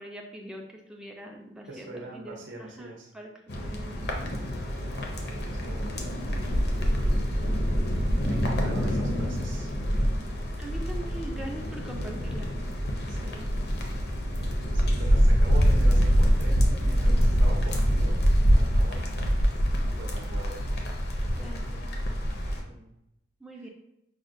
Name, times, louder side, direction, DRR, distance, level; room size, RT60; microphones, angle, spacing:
voice 1, 0.0-4.3 6.8-7.2 10.6-12.5 13.2-13.5 21.3-21.9 23.4-23.7, right 1 dB, 5° right, 0 dB, 0.3 m, -42 dB
voice 2, 1.7-3.1 4.9-6.3 8.2-9.7 13.1-13.7 14.7-19.2 19.9-20.7 22.5-22.9 23.6-23.7, right 2 dB, 80° right, -1 dB, 0.7 m, -43 dB
sound 1, 3.5-22.6, equal, 55° left, 0.5 m, -25 dB
4.9 x 2.1 x 2.5 m, 0.84 s
head